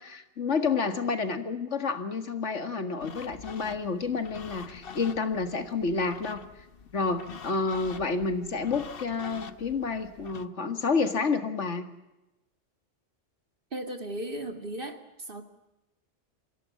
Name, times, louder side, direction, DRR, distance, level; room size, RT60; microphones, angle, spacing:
voice 1, 0.0-6.7 6.9-11.9, left 4 dB, 75° left, 9 dB, 2.2 m, -29 dB
sound 1, 3.0-10.5, left 6 dB, 55° left, 1.1 m, -45 dB
voice 2, 13.7-15.4, right 1 dB, 45° right, 7 dB, 2.3 m, -36 dB
27.0 x 16.0 x 8.5 m, 0.99 s
omnidirectional pair, 1.2 m